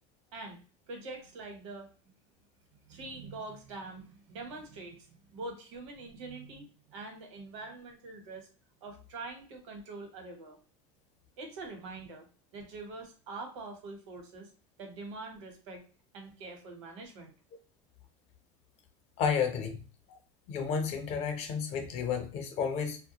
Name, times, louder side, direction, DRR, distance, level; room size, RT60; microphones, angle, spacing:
voice 1, 0.9-1.9 2.9-8.5 8.8-10.6 11.4-12.3 12.5-14.5 14.8-15.8 16.1-17.3, right 3 dB, 85° right, 4 dB, 1.0 m, -44 dB
voice 2, 19.2-19.8 20.1-20.2 20.5-23.0, left 6 dB, 45° left, 6 dB, 0.6 m, -31 dB
2.2 x 2.1 x 2.8 m, 0.37 s
supercardioid pair, 125°, 15 cm